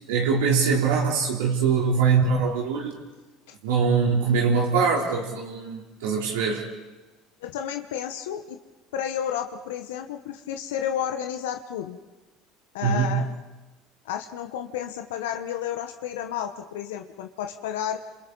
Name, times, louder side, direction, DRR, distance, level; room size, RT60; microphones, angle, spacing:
voice 1, 0.1-2.9 3.6-6.7 12.8-13.3, right 5 dB, 80° right, -2 dB, 3.5 m, -23 dB
voice 2, 7.4-8.6 8.9-12.0 12.7-13.3 14.0-18.0, left 9 dB, 80° left, 6 dB, 1.2 m, -31 dB
28.5 x 27.0 x 4.1 m, 1.1 s
hypercardioid pair, 80°, 0 cm